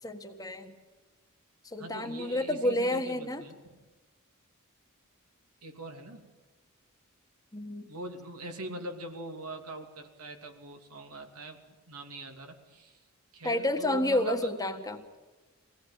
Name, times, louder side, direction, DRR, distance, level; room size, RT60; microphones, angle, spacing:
voice 1, 0.0-0.7 1.7-3.4 7.5-7.9 13.4-15.0, left 1 dB, 15° left, 6 dB, 1.5 m, -30 dB
voice 2, 1.8-3.8 5.6-6.2 7.9-13.0 13.3-14.5, right 2 dB, 85° right, 4 dB, 2.8 m, -42 dB
24.0 x 17.5 x 9.1 m, 1.2 s
head